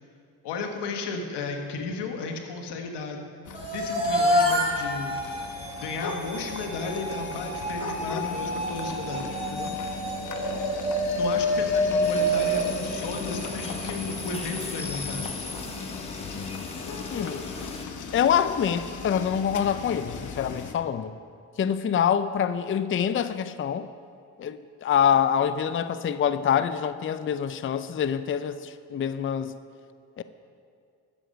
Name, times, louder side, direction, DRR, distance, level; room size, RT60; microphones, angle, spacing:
voice 1, 0.4-3.2 3.7-5.2 5.8-9.7 11.1-15.3, left 3 dB, 85° left, 4 dB, 1.2 m, -34 dB
sound 1, 3.5-20.7, left 5 dB, 50° left, 1.1 m, -38 dB
sound 2, 3.5-13.7, equal, 15° right, 2.5 m, -28 dB
sound 3, 12.0-17.9, left 2 dB, 15° left, 1.1 m, -38 dB
voice 2, 17.1-17.4 18.1-21.1 21.6-23.9 24.4-29.6 30.2-30.3, left 8 dB, 30° left, 13 dB, 0.5 m, -25 dB
12.5 x 6.7 x 5.1 m, 2.4 s
supercardioid pair, 45°, 40 cm